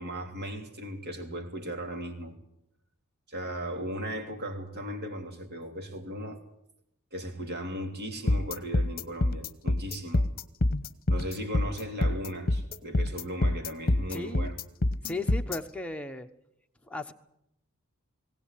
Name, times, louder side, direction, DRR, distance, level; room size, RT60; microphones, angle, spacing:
voice 1, 0.0-2.3 3.3-6.4 7.1-10.3 11.1-14.6, equal, 50° right, 4 dB, 3.2 m, -37 dB
sound 1, 8.3-15.6, left 1 dB, 45° left, 1.0 m, -26 dB
voice 2, 14.1-14.5 15.0-16.3 16.8-17.1, left 2 dB, 5° left, 5 dB, 1.1 m, -36 dB
20.0 x 18.0 x 8.5 m, 0.80 s
head